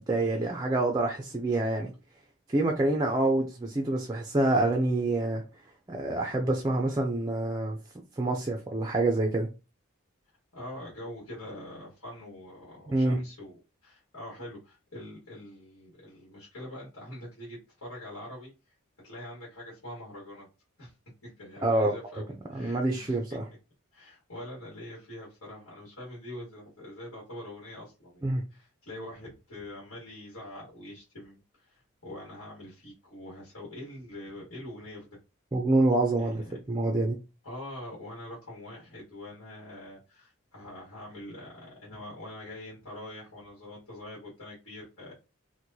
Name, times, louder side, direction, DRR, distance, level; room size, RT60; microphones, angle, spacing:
voice 1, 0.0-1.9 2.5-5.4 5.9-7.8 8.2-9.5 12.9-13.2 21.6-21.9 22.5-23.5 28.2-28.4 35.5-37.2, right 2 dB, 20° right, 0.4 m, -26 dB
voice 2, 10.5-18.7 19.0-20.5 20.8-20.9 21.2-23.4 23.9-35.1 36.2-36.6 37.4-45.1, left 1 dB, 75° left, 1.5 m, -44 dB
4.5 x 2.1 x 2.7 m
head